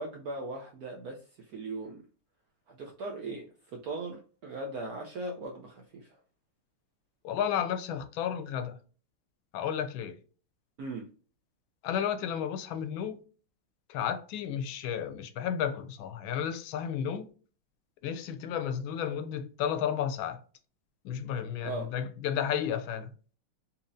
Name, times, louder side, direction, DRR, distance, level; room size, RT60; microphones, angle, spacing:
voice 1, 0.0-2.0 2.7-6.2 10.8-11.1 21.6-21.9, right 2 dB, 85° right, 0.8 m, -39 dB
voice 2, 7.2-8.8 9.5-10.2 11.8-13.2 13.9-17.3 18.0-20.4 21.0-23.1, left 8 dB, 75° left, 1.3 m, -32 dB
4.2 x 2.8 x 2.6 m
omnidirectional pair, 2.3 m